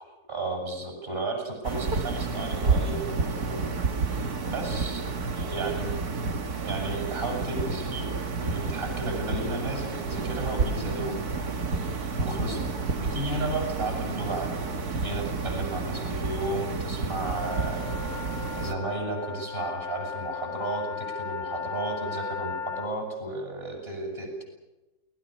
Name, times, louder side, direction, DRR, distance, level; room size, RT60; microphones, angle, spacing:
voice 1, 0.3-3.7 4.5-5.0 5.3-5.9 6.6-8.1 8.4-11.2 12.2-17.8 18.5-24.4, right 2 dB, 35° right, 1 dB, 8.3 m, -33 dB
sound 1, 1.6-18.7, right 4 dB, 70° right, 2.3 m, -30 dB
sound 2, 17.3-22.9, left 6 dB, 35° left, 1.4 m, -36 dB
29.5 x 20.5 x 6.7 m, 1.1 s
omnidirectional pair, 1.7 m